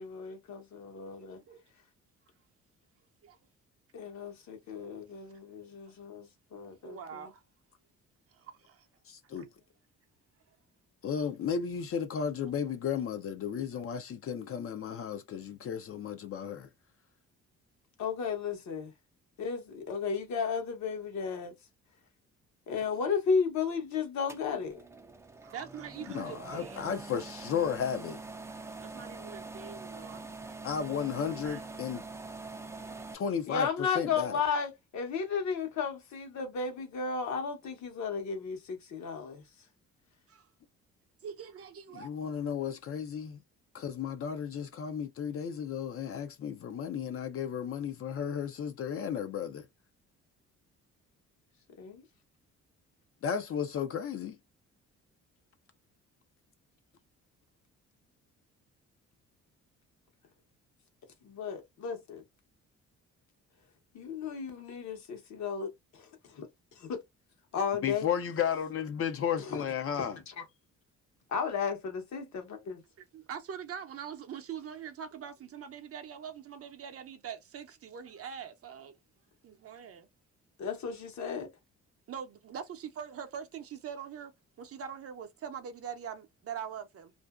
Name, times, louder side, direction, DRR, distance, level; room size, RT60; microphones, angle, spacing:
voice 1, 0.0-1.4 3.9-7.3 18.0-18.9 19.4-21.5 22.7-24.8 33.5-39.4 51.8-52.0 61.2-62.2 63.9-66.5 66.8-67.0 67.5-68.1 69.4-69.6 70.0-70.3 71.3-72.8 80.6-81.5, left 6 dB, 65° left, 1.0 m, -34 dB
voice 2, 6.8-7.4 8.3-8.9 9.4-9.5 25.4-27.0 28.8-30.2 31.3-31.6 40.3-40.5 41.2-42.1 73.0-79.0 79.4-80.1 82.1-84.3 84.6-87.1, right 8 dB, 50° right, 0.6 m, -43 dB
voice 3, 9.1-9.5 11.0-16.7 26.1-28.2 30.6-32.0 33.1-34.4 41.9-43.4 43.7-49.7 53.2-54.4 67.8-70.2, left 7 dB, 50° left, 0.5 m, -34 dB
sound 1, 24.3-33.1, right 3 dB, 10° right, 0.4 m, -44 dB
2.5 x 2.1 x 2.3 m
cardioid pair, 90°, 30 cm